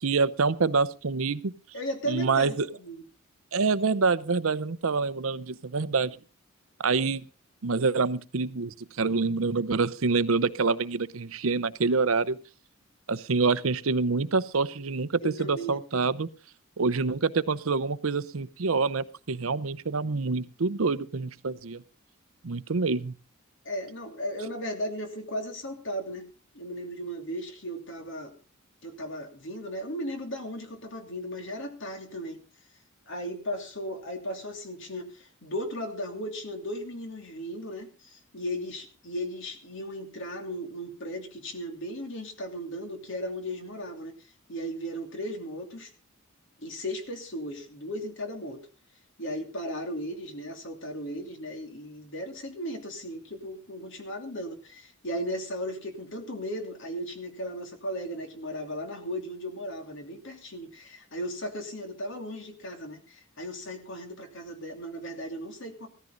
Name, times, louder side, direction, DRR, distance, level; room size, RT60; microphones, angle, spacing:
voice 1, 0.0-1.5 2.1-2.7 3.5-6.2 6.8-7.3 7.6-12.4 13.1-16.3 16.8-21.8 22.4-23.1, right 4 dB, 75° right, 15 dB, 0.7 m, -26 dB
voice 2, 1.7-3.0 15.2-15.8 23.6-26.2 26.5-28.3 28.8-32.4 33.1-45.9 46.6-48.6 49.2-65.9, equal, 60° left, 5 dB, 2.8 m, -36 dB
16.5 x 14.0 x 3.9 m, 0.33 s
head